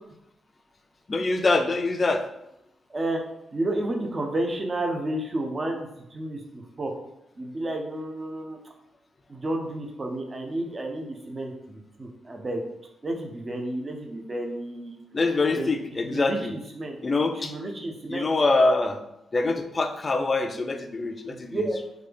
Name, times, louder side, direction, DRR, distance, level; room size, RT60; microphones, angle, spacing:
voice 1, 1.1-2.2 15.1-16.5 17.0-17.5 18.1-19.0 19.3-21.6, left 3 dB, 35° left, 7 dB, 0.3 m, -24 dB
voice 2, 3.5-5.9 6.1-6.9 7.4-8.6 9.3-12.6 13.0-14.9 15.6-15.7 16.0-17.0 17.4-18.3 21.3-21.8, right 1 dB, 35° right, 2 dB, 0.6 m, -31 dB
3.3 x 2.3 x 3.4 m, 0.83 s
cardioid pair, 85°, 0 cm